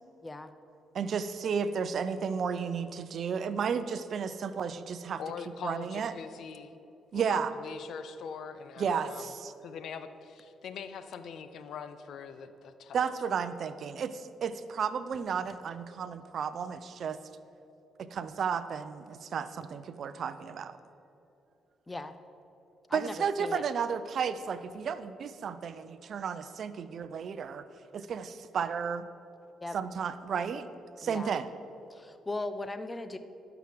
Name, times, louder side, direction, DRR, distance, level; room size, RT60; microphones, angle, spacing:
voice 1, 0.2-0.5 21.9-22.1 22.9-23.6 29.6-29.8 31.0-31.3 31.9-33.2, left 2 dB, 20° left, 11 dB, 0.7 m, -38 dB
voice 2, 0.9-5.2 5.6-6.1 7.1-7.5 8.8-9.5 12.9-17.2 18.0-20.8 22.9-27.6 27.9-29.0 29.7-30.7 31.0-31.5, right 6 dB, 60° right, 13 dB, 0.6 m, -33 dB
voice 3, 5.2-6.8 7.1-9.3 9.6-13.1, left 6 dB, 70° left, 11 dB, 0.6 m, -42 dB
12.0 x 6.0 x 7.6 m, 2.9 s
cardioid pair, 90°, 0 cm